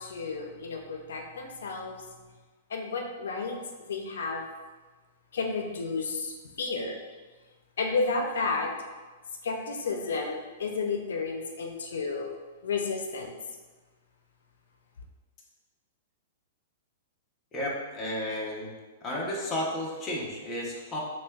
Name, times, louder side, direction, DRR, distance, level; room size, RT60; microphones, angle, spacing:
voice 1, 0.0-2.1 2.7-4.4 5.3-7.0 7.8-8.7 9.4-12.3 12.6-13.4, left 4 dB, 90° left, 3 dB, 0.4 m, -32 dB
voice 2, 17.5-18.7 19.0-21.0, left 1 dB, 15° left, -4 dB, 0.7 m, -32 dB
6.0 x 2.2 x 2.3 m, 1.3 s
hypercardioid pair, 155°, 0 cm